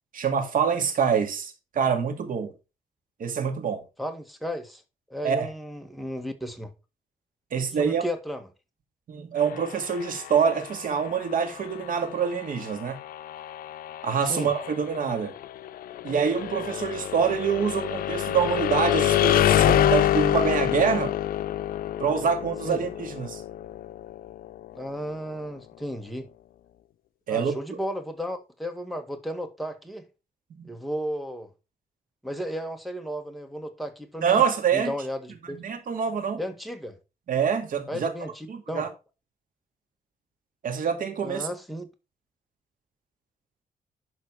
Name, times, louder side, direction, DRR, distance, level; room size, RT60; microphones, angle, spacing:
voice 1, 0.1-2.5 3.2-3.8 5.2-5.5 7.5-8.0 9.1-13.0 14.0-15.3 16.0-21.1 22.0-23.4 27.3-27.5 30.5-30.7 34.2-34.9 35.5-36.4 37.3-38.1 38.5-38.9 40.6-41.5, right 7 dB, 70° right, 2.3 m, -26 dB
voice 2, 4.0-4.8 5.1-6.7 7.8-8.5 14.3-14.5 22.6-22.8 24.7-26.3 27.3-30.0 30.6-31.5 32.2-34.4 34.7-35.6 36.4-36.9 37.9-38.9 41.2-41.9, equal, ahead, 1.8 m, -34 dB
sound 1, 9.4-25.2, left 12 dB, 90° left, 0.5 m, -27 dB
11.5 x 4.2 x 4.8 m
cardioid pair, 110°, 15 cm